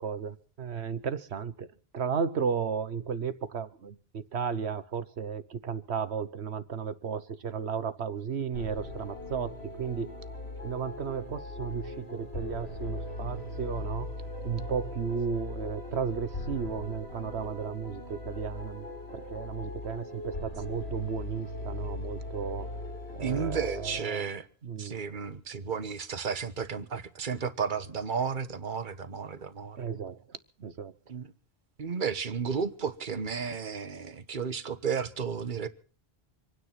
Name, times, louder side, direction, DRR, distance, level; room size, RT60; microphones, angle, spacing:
voice 1, 0.0-1.7 1.9-10.1 10.6-14.2 14.4-22.7 23.2-24.3 24.6-25.0 29.8-30.9, right 6 dB, 85° right, 1.4 m, -34 dB
sound 1, 8.5-24.0, left 2 dB, 75° left, 4.5 m, -39 dB
voice 2, 23.2-24.5 24.8-29.9 31.1-31.3 31.8-35.7, right 6 dB, 50° right, 1.3 m, -33 dB
25.0 x 9.8 x 5.8 m
omnidirectional pair, 1.1 m